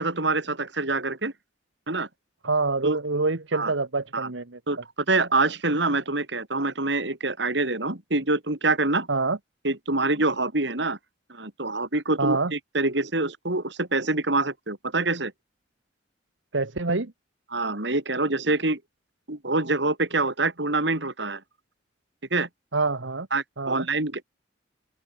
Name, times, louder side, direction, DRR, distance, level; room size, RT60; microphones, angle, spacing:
voice 1, 0.0-1.3 1.9-2.1 2.8-3.0 3.5-3.7 4.1-4.3 4.7-4.8 5.1-9.1 9.6-11.0 11.3-15.3 17.5-18.8 19.3-21.4 22.3-22.5 23.3-24.2, right 2 dB, 65° right, 3.5 m, -25 dB
voice 2, 2.4-4.6 9.1-9.4 12.2-12.5 16.5-17.1 22.7-23.3 23.6-23.9, right 3 dB, 85° right, 1.5 m, -26 dB
open air
head